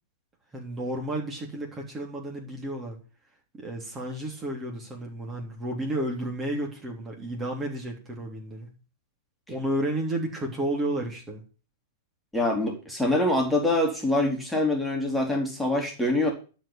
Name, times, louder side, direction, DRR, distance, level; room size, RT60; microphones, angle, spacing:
voice 1, 0.5-3.0 3.5-8.7 9.5-11.4, right 1 dB, 20° right, 0 dB, 3.3 m, -32 dB
voice 2, 12.3-16.3, left 1 dB, 5° left, 0 dB, 3.4 m, -25 dB
12.0 x 5.4 x 8.8 m, 0.36 s
figure-of-eight pair, 100°, 0 cm